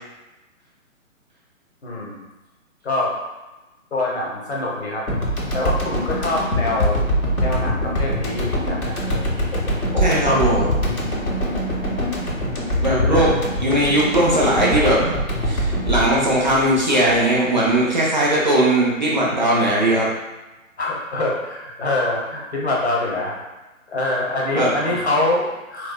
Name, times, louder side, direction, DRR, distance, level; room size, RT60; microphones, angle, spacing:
voice 1, 1.8-2.2 2.8-3.1 3.9-5.0 5.5-7.0 7.4-9.2 9.5-11.2 13.0-13.3 20.8-23.3 23.9-25.9, left 2 dB, 50° left, -3 dB, 0.8 m, -25 dB
sound 1, 5.1-17.5, equal, 90° left, 0.9 m, -23 dB
voice 2, 10.0-10.7 12.8-13.3 13.6-15.0 15.4-20.1 24.5-24.7, right 1 dB, 35° right, -5 dB, 0.5 m, -18 dB
4.1 x 2.2 x 2.2 m, 1.1 s
figure-of-eight pair, 135°, 42 cm